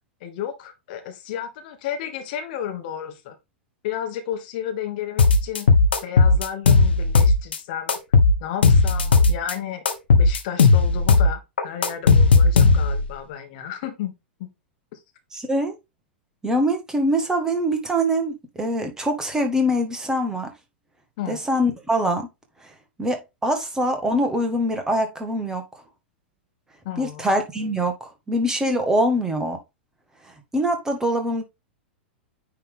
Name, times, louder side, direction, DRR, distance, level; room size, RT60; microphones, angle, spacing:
voice 1, 0.2-3.4 3.8-5.7 6.0-8.0 8.4-9.8 10.2-14.1 14.9-15.0 21.2-21.4 26.8-27.2, left 9 dB, 50° left, 1.5 m, -32 dB
sound 1, 5.2-7.6 7.9-9.5 9.9-13.1, left 4 dB, 70° left, 1.2 m, -16 dB
voice 2, 15.3-15.7 16.4-20.5 21.3-22.3 22.6-22.7 23.0-25.6 27.0-29.6 30.5-31.4, equal, 10° right, 1.7 m, -23 dB
9.4 x 3.7 x 3.7 m
figure-of-eight pair, 95°, 6 cm